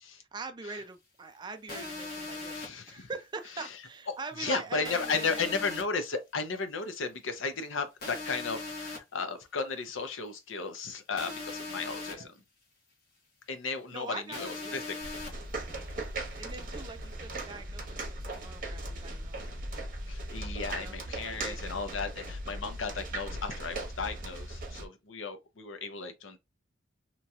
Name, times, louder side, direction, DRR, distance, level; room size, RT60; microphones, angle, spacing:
voice 1, 0.1-2.5 2.9-5.7 12.1-12.3 13.9-14.8 16.4-19.5 20.7-21.0 21.2-21.6, right 4 dB, 20° right, 0.3 m, -43 dB
sound 1, 1.7-2.7 4.8-5.8 8.0-9.0 11.2-12.1 14.3-15.3, left 3 dB, 50° left, 1.2 m, -39 dB
voice 2, 2.5-3.1 4.4-12.3 13.5-15.2 20.1-26.4, left 4 dB, 80° left, 0.7 m, -35 dB
sound 2, 15.0-24.9, right 1 dB, 45° right, 1.0 m, -38 dB
3.0 x 2.7 x 2.3 m
head